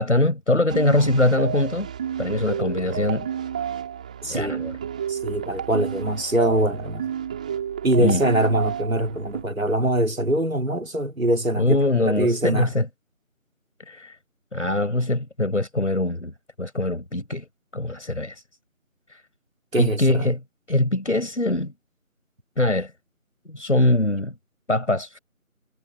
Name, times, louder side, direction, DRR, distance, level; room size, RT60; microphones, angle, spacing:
voice 1, 0.0-1.9 2.2-3.3 4.3-4.8 8.0-8.2 11.6-12.9 13.9-14.2 14.5-17.4 17.7-18.4 19.1-19.2 19.8-20.4 20.7-21.7 22.6-22.9 23.5-24.3 24.7-25.2, left 2 dB, 60° left, 6.6 m, -22 dB
sound 1, 0.7-9.4, right 8 dB, 5° right, 3.8 m, -31 dB
voice 2, 4.2-4.6 5.1-7.1 7.8-12.7 19.7-20.3, right 1 dB, 70° right, 3.4 m, -23 dB
figure-of-eight pair, 170°, 41 cm